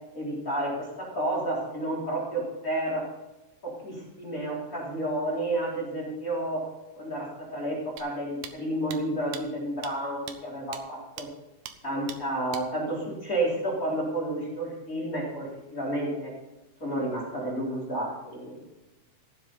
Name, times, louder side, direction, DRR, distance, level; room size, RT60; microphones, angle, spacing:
voice 1, 0.1-3.1 3.6-6.6 7.0-11.3 11.8-16.3 16.8-18.6, right 1 dB, 25° left, -5 dB, 4.2 m, -31 dB
sound 1, 8.0-8.1 8.4-8.5 8.9-9.0 9.3-9.4 9.8-9.9 10.3-10.4 10.7-10.8 11.2-11.3 11.7-11.8 12.1-12.2 12.5-12.6, right 9 dB, 80° right, 2.5 m, -40 dB
16.5 x 7.6 x 5.4 m, 1.0 s
omnidirectional pair, 3.8 m